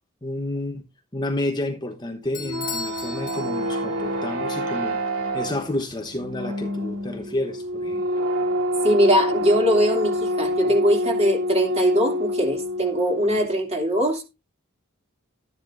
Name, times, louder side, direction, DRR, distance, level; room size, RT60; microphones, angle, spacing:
voice 1, 0.2-0.8 1.1-5.0 5.3-8.0, left 1 dB, 20° left, 1.0 m, -30 dB
Bell / Doorbell, 2.3-4.1, left 6 dB, 40° left, 1.6 m, -36 dB
sound 1, 2.3-13.5, equal, 75° right, 2.4 m, -27 dB
voice 2, 8.8-14.2, equal, 30° right, 2.8 m, -21 dB
12.5 x 10.5 x 2.6 m
head